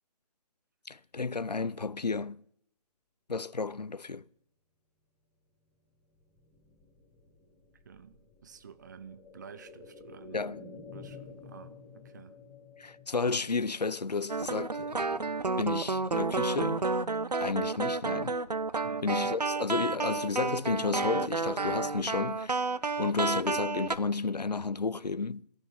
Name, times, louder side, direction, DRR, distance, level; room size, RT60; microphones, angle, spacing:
voice 1, 0.9-2.4 3.3-4.2 10.3-10.6 12.8-16.9 17.3-18.4 19.0-22.7 23.0-25.5, left 4 dB, 90° left, 0.5 m, -32 dB
sound 1, 6.0-15.8 16.2-16.3, left 5 dB, 5° left, 1.1 m, -52 dB
voice 2, 7.9-12.4 18.8-19.1, right 7 dB, 30° right, 0.6 m, -51 dB
sound 2, 14.3-24.0, right 3 dB, 85° right, 0.6 m, -31 dB
14.5 x 6.4 x 8.8 m
figure-of-eight pair, 145°, 20 cm